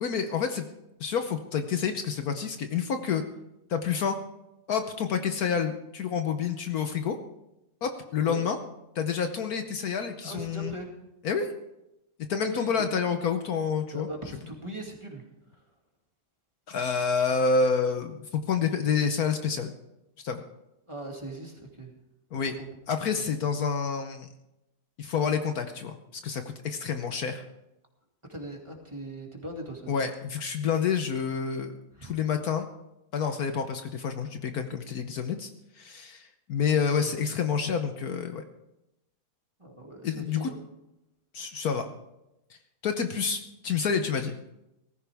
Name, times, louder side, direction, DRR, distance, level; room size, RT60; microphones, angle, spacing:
voice 1, 0.0-0.6 1.0-3.2 3.7-4.2 4.7-7.2 7.8-8.6 8.9-10.7 11.2-11.5 12.3-14.1 16.7-19.7 20.2-20.4 22.3-22.5 22.9-24.3 25.0-27.4 29.9-32.7 33.1-35.5 35.8-38.4 40.0-40.5 41.3-41.9 42.8-44.4, left 6 dB, 65° left, 7 dB, 1.3 m, -28 dB
voice 2, 10.2-10.9 12.4-12.8 13.9-15.2 15.5-15.6 20.9-21.9 22.4-22.7 28.3-30.1 31.9-32.2 36.9-37.1 39.6-40.6, right 2 dB, 15° right, 0 dB, 2.3 m, -40 dB
18.5 x 15.0 x 3.5 m, 0.90 s
omnidirectional pair, 1.8 m